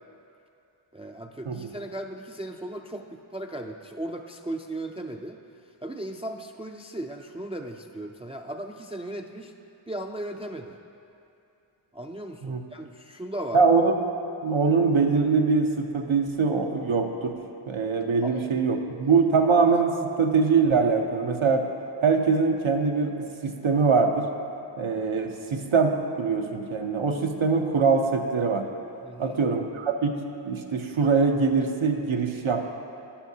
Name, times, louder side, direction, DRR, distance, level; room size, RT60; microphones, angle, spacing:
voice 1, 0.9-5.4 5.8-9.5 9.9-10.8 11.9-13.6 18.2-18.5 29.0-29.4, right 1 dB, 15° right, 3 dB, 0.3 m, -36 dB
voice 2, 13.5-13.9 14.4-17.3 17.7-21.7 22.0-24.3 24.8-28.7 29.2-32.6, right 4 dB, 85° right, 4 dB, 0.8 m, -23 dB
11.5 x 10.5 x 2.8 m, 2.6 s
wide cardioid pair, 50°, 47 cm